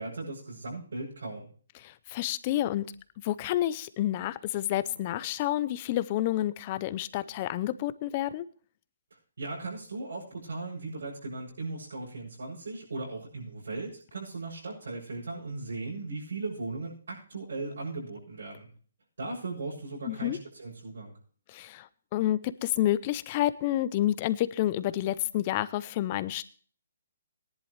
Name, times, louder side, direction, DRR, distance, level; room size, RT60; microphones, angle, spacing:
voice 1, 0.0-1.5 9.4-18.7 19.2-21.1, right 3 dB, 75° right, -7 dB, 7.2 m, -37 dB
voice 2, 1.8-2.9 3.2-8.5 20.1-20.4 21.5-26.4, left 13 dB, 20° left, 16 dB, 0.5 m, -29 dB
18.5 x 11.0 x 3.2 m, 0.44 s
hypercardioid pair, 175°, 0 cm